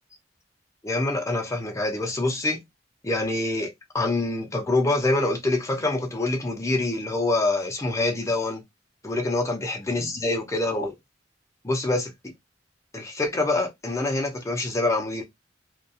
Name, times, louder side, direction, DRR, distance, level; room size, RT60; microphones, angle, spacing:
voice 1, 0.8-2.6 3.0-8.6 9.0-10.9 11.6-12.1 12.9-15.2, left 2 dB, 15° left, 0.5 m, -25 dB
2.3 x 2.2 x 2.6 m
head